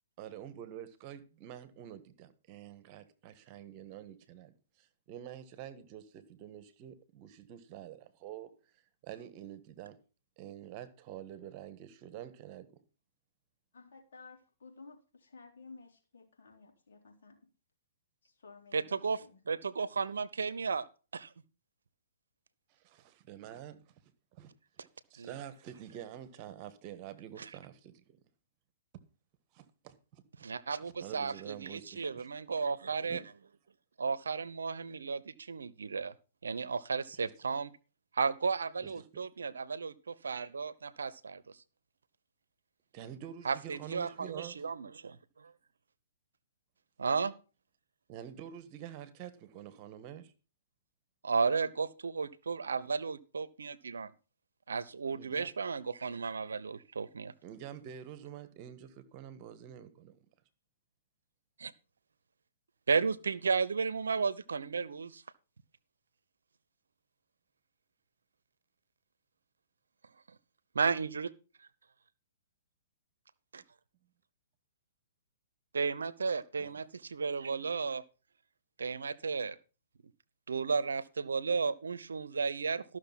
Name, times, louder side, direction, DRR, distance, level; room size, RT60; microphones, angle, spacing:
voice 1, 0.2-8.5 9.0-10.0 10.4-12.7 22.7-24.0 24.3-28.2 28.9-29.0 29.5-30.5 30.8-32.3 33.1-33.2 37.1-37.3 38.8-39.1 42.9-44.6 48.1-50.3 55.1-55.5 57.4-60.2 76.5-76.8, right 10 dB, 40° right, 1.5 m, -47 dB
voice 2, 13.7-17.4 18.2-19.4, left 4 dB, 70° left, 3.7 m, -54 dB
voice 3, 18.7-20.8 21.1-21.3 25.2-25.4 30.4-33.2 34.0-36.1 36.4-37.7 38.2-41.4 43.4-45.2 47.0-47.3 51.2-54.1 54.7-57.3 61.6-61.7 62.9-65.2 70.8-71.3 75.7-78.0 78.8-79.6 80.5-82.8, right 5 dB, 80° right, 0.8 m, -33 dB
13.5 x 6.4 x 5.8 m
hypercardioid pair, 125°, 0 cm